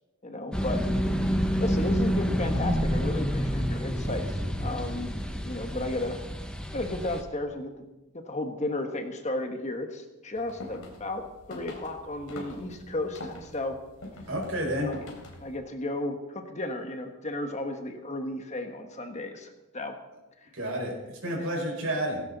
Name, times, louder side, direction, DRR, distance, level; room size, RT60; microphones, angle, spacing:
voice 1, 0.2-0.8 1.6-5.1 5.4-6.2 6.7-7.9 8.1-13.8 14.8-15.1 15.4-19.9 20.4-20.5, left 2 dB, 30° left, 5 dB, 1.4 m, -34 dB
sound 1, 0.5-7.2, equal, 5° left, 1.1 m, -28 dB
sound 2, 10.4-15.6, left 1 dB, 65° left, 3.6 m, -44 dB
voice 2, 14.3-14.9 20.5-22.2, equal, 65° right, -1 dB, 5.6 m, -30 dB
17.0 x 16.5 x 4.1 m, 1.0 s
head